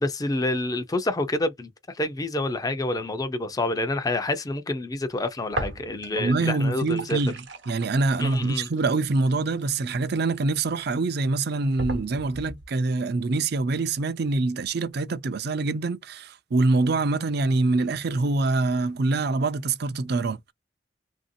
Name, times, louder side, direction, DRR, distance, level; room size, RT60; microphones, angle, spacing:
voice 1, 0.0-7.2 8.2-8.7, left 2 dB, 20° left, 0.5 m, -28 dB
sound 1, 5.5-6.3 6.6-10.6 11.2-11.3 11.8-12.7, right 2 dB, 80° right, 0.9 m, -36 dB
voice 2, 6.1-7.3 7.7-20.5, right 3 dB, 60° right, 0.5 m, -25 dB
3.0 x 2.7 x 2.6 m
head